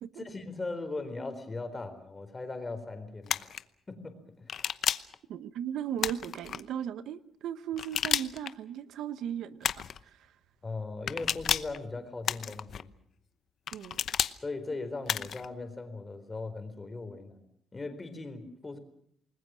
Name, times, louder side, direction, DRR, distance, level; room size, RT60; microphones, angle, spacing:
voice 1, 0.2-3.5 3.9-4.7 10.6-12.9 14.4-18.8, left 3 dB, 20° left, 8 dB, 4.2 m, -39 dB
sound 1, 3.3-3.6 4.5-5.1 6.0-6.6 7.8-8.5 9.6-10.0 11.1-11.8 12.2-12.8 13.7-14.3 15.1-15.5, left 8 dB, 55° left, 0.9 m, -31 dB
voice 2, 5.3-9.7 10.0-10.3 13.7-14.0, right 10 dB, 75° right, 13 dB, 1.0 m, -37 dB
28.5 x 20.5 x 6.3 m, 0.68 s
cardioid pair, 120°, 0 cm